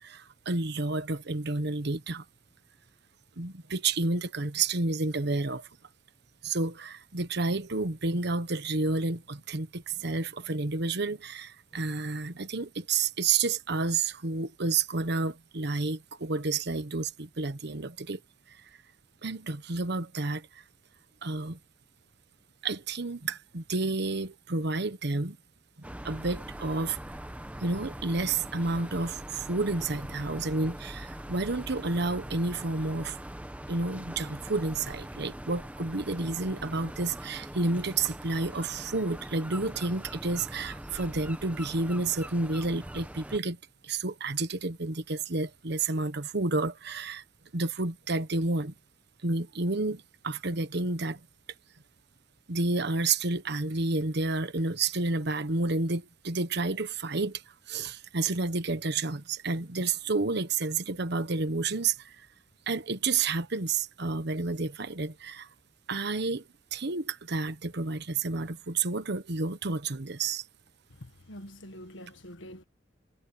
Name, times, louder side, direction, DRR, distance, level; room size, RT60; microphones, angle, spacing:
voice 1, 0.0-2.2 3.4-5.7 6.4-18.2 18.5-18.7 19.2-20.6 21.2-21.6 22.6-25.4 25.8-27.0 27.6-33.2 33.7-43.6 43.8-47.2 47.5-48.7 49.2-51.2 52.5-62.3 62.7-65.5 65.9-66.4 66.7-70.4, right 3 dB, 60° right, 1.3 m, -30 dB
sound 1, 25.8-43.4, right 1 dB, 10° right, 1.3 m, -42 dB
voice 2, 70.9-72.6, equal, 80° left, 1.8 m, -46 dB
head